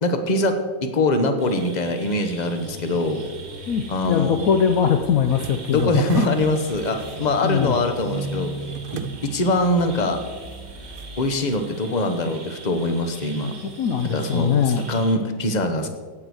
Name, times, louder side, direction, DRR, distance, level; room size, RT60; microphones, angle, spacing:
voice 1, 0.0-3.2 3.9-4.4 5.7-8.5 8.9-10.2 11.2-13.5 14.0-14.5 14.9-15.9, left 2 dB, 30° left, 7 dB, 0.8 m, -23 dB
sound 1, 1.4-15.2, right 3 dB, 55° right, 2.3 m, -43 dB
sound 2, 2.6-11.2, right 2 dB, 30° right, 2.7 m, -42 dB
voice 2, 3.7-6.4 7.4-7.7 13.8-14.9, left 7 dB, 85° left, 8 dB, 0.7 m, -21 dB
sound 3, 5.3-7.7 8.0-9.2 9.6-9.7 11.0-11.1, right 5 dB, 85° right, 1.7 m, -35 dB
16.5 x 6.2 x 6.4 m, 1.4 s
omnidirectional pair, 2.3 m